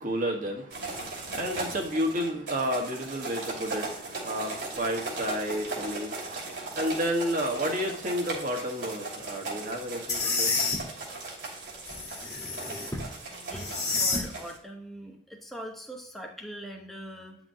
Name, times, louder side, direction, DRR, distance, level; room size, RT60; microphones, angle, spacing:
voice 1, 0.0-10.6, equal, 50° right, 2 dB, 1.5 m, -31 dB
sound 1, 0.7-14.6, right 3 dB, 75° right, 2.6 m, -38 dB
sound 2, 10.1-10.8 11.9-13.0 13.5-14.2, left 3 dB, 20° left, 1.6 m, -29 dB
voice 2, 13.3-17.4, equal, ahead, 0 dB, 1.2 m, -42 dB
9.6 x 6.0 x 2.8 m, 0.65 s
head